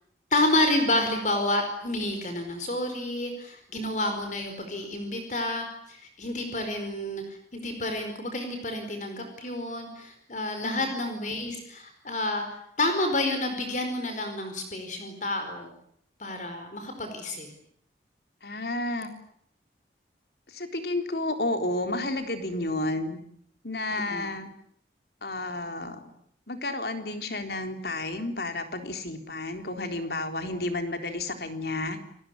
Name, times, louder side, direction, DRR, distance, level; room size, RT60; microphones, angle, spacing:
voice 1, 0.3-12.4 12.8-15.7 16.2-17.5 23.9-24.3, left 1 dB, 45° left, 6 dB, 4.8 m, -29 dB
voice 2, 10.6-10.9 18.4-19.1 20.5-23.2 23.6-24.5 25.2-26.1 26.5-32.0, left 2 dB, 60° left, 7 dB, 3.8 m, -31 dB
29.5 x 20.0 x 9.7 m, 0.70 s
head